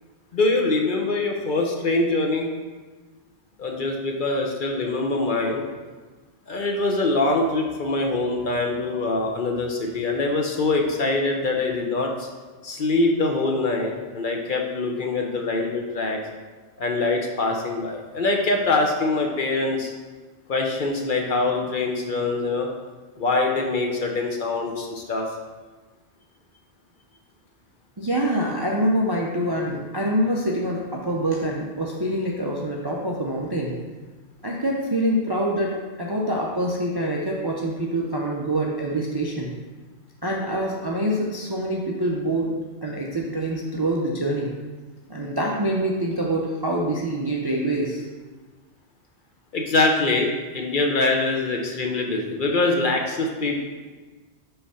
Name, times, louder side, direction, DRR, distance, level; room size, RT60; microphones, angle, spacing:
voice 1, 0.3-2.5 3.6-5.6 6.5-12.3 12.6-16.2 16.8-19.9 20.5-22.7 23.2-25.2 49.5-53.6, left 2 dB, 50° left, 2 dB, 0.8 m, -24 dB
voice 2, 28.0-33.8 34.4-39.5 40.2-42.6 42.8-44.5 45.1-48.0, right 1 dB, 35° right, -2 dB, 0.4 m, -25 dB
5.5 x 3.4 x 5.5 m, 1.3 s
omnidirectional pair, 1.2 m